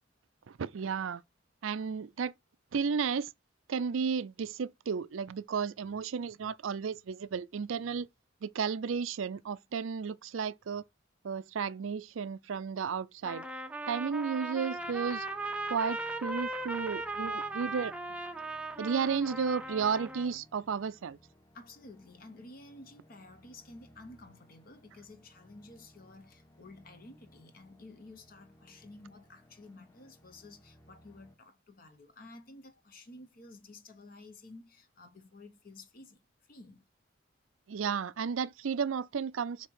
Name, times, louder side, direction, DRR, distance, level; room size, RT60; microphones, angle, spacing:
voice 1, 0.5-1.2 1.6-2.3 2.7-3.3 3.7-8.1 8.4-10.8 11.2-13.5 13.9-15.3 15.7-17.9 18.8-21.2 37.7-39.7, right 6 dB, 90° right, 0.4 m, -33 dB
Trumpet, 13.2-20.4, right 2 dB, 5° right, 0.5 m, -38 dB
sound 1, 14.7-31.4, equal, 15° left, 1.0 m, -61 dB
voice 2, 21.5-36.2 36.5-36.8, left 2 dB, 45° left, 0.9 m, -52 dB
7.5 x 2.9 x 4.7 m
head